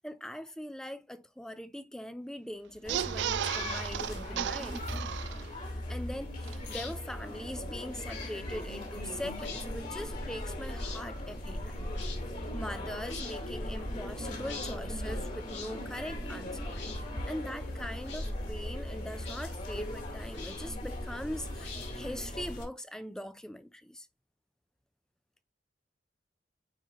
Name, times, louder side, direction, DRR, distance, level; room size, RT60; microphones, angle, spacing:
voice 1, 0.0-4.8 5.9-11.9 12.5-16.6 17.3-24.1, left 1 dB, 5° left, 0.5 m, -41 dB
sound 1, 2.8-22.6, left 1 dB, 45° left, 2.9 m, -38 dB
sound 2, 2.8-5.7 6.1-6.2 6.4-6.6, right 10 dB, 75° right, 0.3 m, -35 dB
sound 3, 6.6-6.9 8.0-8.3 9.3-9.7 10.8-11.0 11.9-12.2 13.0-13.4 14.4-14.8 15.5-15.7 16.7-17.0 18.0-18.3 19.2-19.5 20.3-20.8 21.6-22.1, left 5 dB, 80° left, 2.7 m, -44 dB
9.1 x 3.9 x 2.9 m
head